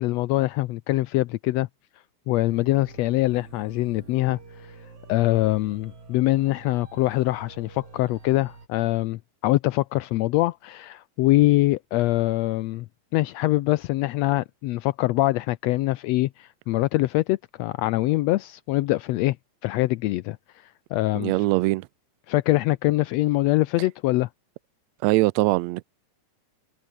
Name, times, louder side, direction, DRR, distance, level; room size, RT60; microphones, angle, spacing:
voice 1, 0.0-1.7 2.3-4.4 5.1-12.8 13.1-19.4 19.6-20.4 20.9-21.3 22.3-24.3, left 17 dB, 80° left, 1.5 m, -23 dB
sound 1, 2.5-8.7, right 4 dB, 65° right, 6.9 m, -47 dB
voice 2, 21.1-21.9 25.0-25.9, right 20 dB, 85° right, 1.5 m, -22 dB
omnidirectional pair, 3.6 m